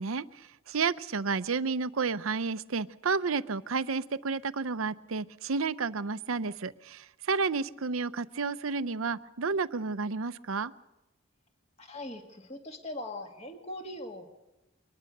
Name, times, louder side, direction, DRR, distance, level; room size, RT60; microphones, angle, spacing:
voice 1, 0.0-10.7, right 4 dB, 80° right, 14 dB, 0.7 m, -31 dB
voice 2, 11.8-14.3, left 1 dB, 30° left, 4 dB, 2.3 m, -41 dB
23.5 x 20.5 x 6.6 m, 0.96 s
head